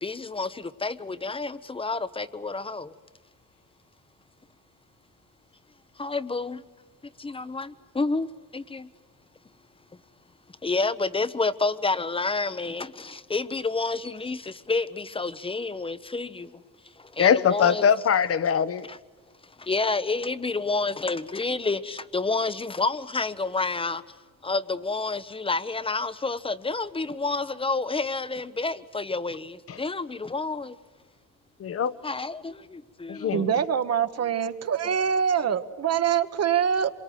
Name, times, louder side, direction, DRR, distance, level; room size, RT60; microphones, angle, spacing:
voice 1, 0.0-2.9 6.0-6.6 7.2-8.9 10.6-16.6 17.0-17.8 18.9-19.0 19.4-24.2 24.4-30.8 32.0-33.5, left 3 dB, 15° left, 0.9 m, -29 dB
voice 2, 17.2-18.9 29.7-29.8 31.6-31.9 33.1-33.5, left 7 dB, 45° left, 1.1 m, -22 dB
voice 3, 33.3-36.9, right 8 dB, 50° right, 1.4 m, -24 dB
26.5 x 23.5 x 9.2 m
cardioid pair, 105°, 32 cm